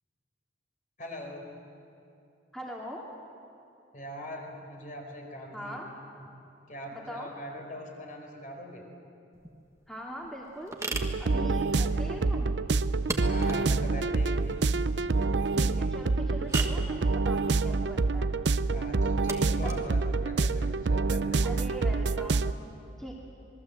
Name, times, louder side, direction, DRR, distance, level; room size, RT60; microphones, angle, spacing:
voice 1, 1.0-1.5 3.9-5.8 6.2-6.3 6.7-8.8 11.7-12.2 13.1-14.5 18.7-21.6, left 1 dB, 45° left, 2 dB, 4.6 m, -42 dB
voice 2, 2.5-3.1 5.5-5.9 6.9-7.4 9.9-10.8 11.2-12.5 15.5-18.3 21.4-22.4 23.0-23.2, equal, 5° left, -3 dB, 2.6 m, -41 dB
sound 1, 9.3-21.7, right 3 dB, 15° right, 1.5 m, -41 dB
sound 2, 10.9-22.5, right 3 dB, 70° right, 0.6 m, -27 dB
27.0 x 20.5 x 7.8 m, 2.7 s
head